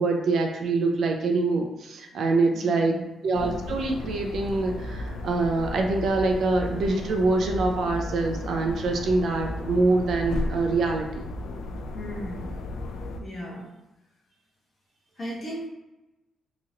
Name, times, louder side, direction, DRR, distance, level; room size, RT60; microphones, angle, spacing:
voice 1, 0.0-3.0 3.2-11.3, right 3 dB, 55° right, 3 dB, 0.4 m, -25 dB
voice 2, 2.5-3.0 11.9-12.5 13.2-13.7 15.2-15.7, equal, 25° left, -5 dB, 1.1 m, -36 dB
sound 1, 3.3-13.2, left 1 dB, 75° left, 0.3 m, -34 dB
3.6 x 3.0 x 2.8 m, 1.0 s
wide cardioid pair, 180°, 0 cm